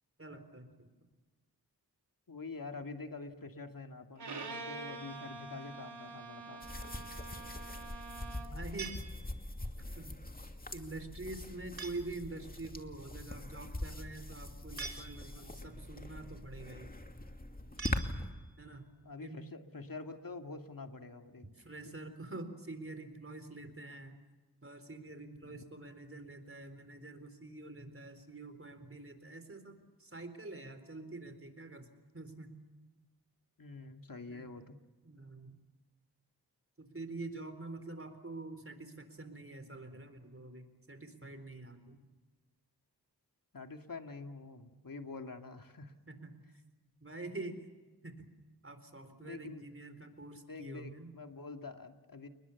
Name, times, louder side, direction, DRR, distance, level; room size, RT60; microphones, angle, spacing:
voice 1, 0.2-0.9 8.5-8.9 10.0-10.2 10.7-16.9 18.6-18.9 19.2-19.4 21.6-24.2 24.6-31.9 32.1-32.5 34.3-34.5 35.0-35.6 36.8-42.1 46.1-46.4 47.0-47.7 48.0-48.3 48.6-51.1, right 2 dB, 35° right, 9 dB, 4.0 m, -46 dB
voice 2, 2.3-6.7 19.0-21.5 21.8-21.9 25.4-25.6 33.6-34.8 43.5-45.9 49.2-49.6 50.3-52.3, left 3 dB, 55° left, 5 dB, 2.5 m, -46 dB
Bowed string instrument, 4.2-8.7, right 3 dB, 85° right, 2.9 m, -46 dB
sound 1, 6.6-18.3, left 1 dB, 20° left, 2.4 m, -43 dB
sound 2, 8.8-9.7 11.8-12.3 14.8-15.6 17.8-18.7, right 4 dB, 60° right, 3.3 m, -46 dB
29.5 x 20.5 x 7.2 m, 1.2 s
cardioid pair, 55°, 39 cm